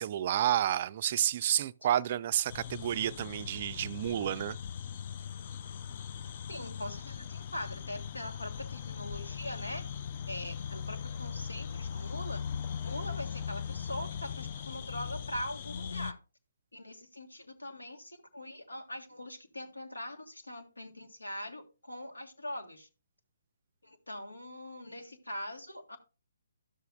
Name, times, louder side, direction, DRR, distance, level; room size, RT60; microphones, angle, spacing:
voice 1, 0.0-4.6, right 11 dB, 40° right, 0.3 m, -30 dB
sound 1, 2.5-16.1, left 7 dB, 40° left, 0.4 m, -39 dB
voice 2, 6.5-9.8 10.3-12.4 12.8-16.2 16.7-22.9 23.8-26.0, left 1 dB, 85° left, 1.6 m, -42 dB
12.5 x 6.8 x 2.2 m
figure-of-eight pair, 135°, 0 cm